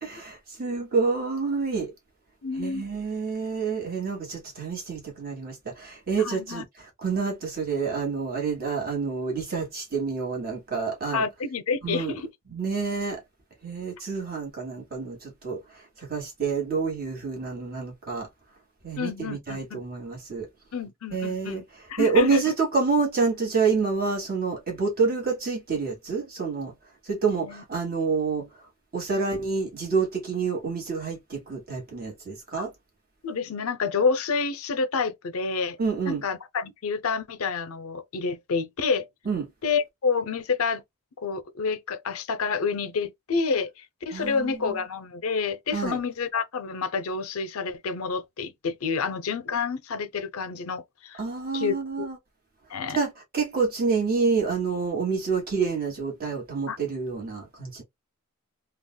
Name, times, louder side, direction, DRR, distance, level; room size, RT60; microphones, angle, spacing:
voice 1, 0.0-1.9 2.6-11.2 11.8-12.1 12.5-13.2 13.6-15.6 16.1-18.3 18.8-20.5 21.1-21.6 22.0-26.7 27.1-28.5 28.9-32.7 35.8-36.2 39.2-39.4 44.1-44.8 45.7-46.0 51.2-52.2 52.9-57.8, right 4 dB, 45° right, 1.5 m, -28 dB
voice 2, 2.4-2.9 6.2-6.6 11.1-12.3 19.0-19.8 20.7-21.6 21.9-22.5 27.4-27.6 33.2-35.8 36.0-39.1 39.6-40.8 41.2-51.2 51.5-52.1 52.7-53.0 56.7-56.8, left 5 dB, 70° left, 0.6 m, -28 dB
3.6 x 2.3 x 2.2 m
head